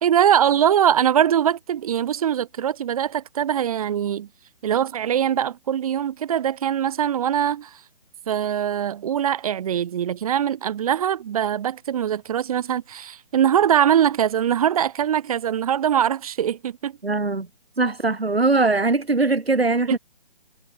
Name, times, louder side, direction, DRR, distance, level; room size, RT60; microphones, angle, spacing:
voice 1, 0.0-4.3 4.6-7.8 8.3-16.9 19.9-20.0, right 9 dB, 35° right, 2.1 m, -22 dB
voice 2, 17.0-17.5 17.8-20.0, right 3 dB, 85° right, 1.9 m, -21 dB
figure-of-eight pair, 140°, 30 cm